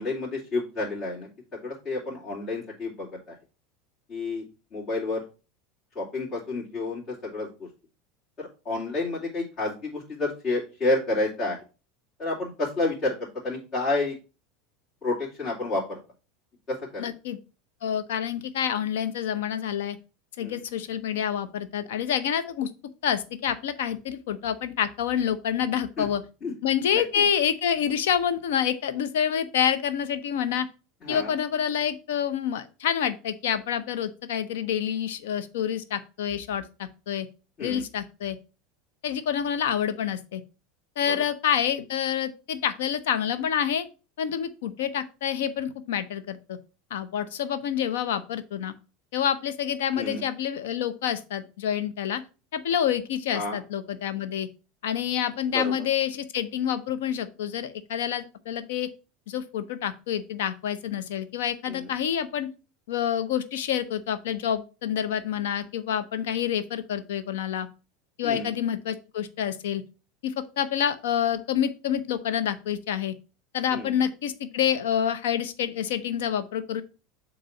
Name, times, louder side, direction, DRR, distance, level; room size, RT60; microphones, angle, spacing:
voice 1, 0.0-3.3 4.1-4.5 4.7-5.2 5.9-7.7 8.4-11.6 12.2-14.1 15.0-16.0 16.7-17.1 20.4-20.6 26.0-26.1 26.4-26.5 26.9-27.2 31.0-31.3 37.6-37.8 41.1-41.2 50.0-50.2 53.3-53.6 55.5-55.7 61.7-61.9 68.2-68.5 73.7-73.9, left 2 dB, 35° left, -8 dB, 2.8 m, -30 dB
voice 2, 17.0-17.4 17.8-20.0 20.4-22.7 23.0-26.2 26.6-30.7 31.1-37.3 37.6-38.4 39.0-40.4 41.0-43.9 44.2-46.6 46.9-48.7 49.1-52.2 52.5-54.5 54.8-58.9 59.3-62.5 62.9-67.7 68.2-69.8 70.2-73.1 73.5-76.8, left 9 dB, 70° left, 12 dB, 0.7 m, -27 dB
7.4 x 3.0 x 5.7 m, 0.32 s
hypercardioid pair, 80°, 0 cm